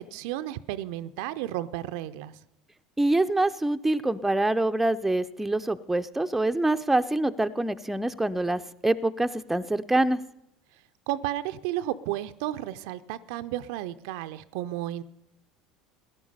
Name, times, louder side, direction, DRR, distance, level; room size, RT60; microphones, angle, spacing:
voice 1, 0.0-2.4 11.1-15.0, right 14 dB, 65° right, 12 dB, 0.5 m, -33 dB
voice 2, 3.0-10.2, right 2 dB, 5° right, 9 dB, 0.6 m, -25 dB
17.0 x 11.0 x 5.5 m, 0.81 s
figure-of-eight pair, 70°, 3 cm